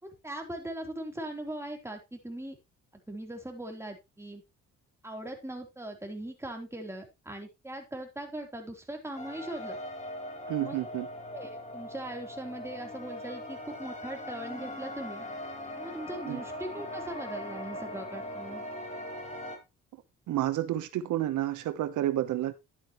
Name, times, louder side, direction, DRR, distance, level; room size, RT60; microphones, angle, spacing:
voice 1, 0.0-2.6 3.1-4.4 5.0-9.8 10.6-10.8 11.3-15.3 15.8-18.6, right 1 dB, 10° right, 3.6 m, -40 dB
sound 1, 9.1-19.6, left 1 dB, 25° left, 4.2 m, -40 dB
voice 2, 10.5-11.1 16.3-16.4 19.9-22.5, right 13 dB, 75° right, 1.0 m, -30 dB
11.5 x 9.0 x 3.1 m
cardioid pair, 90°, 30 cm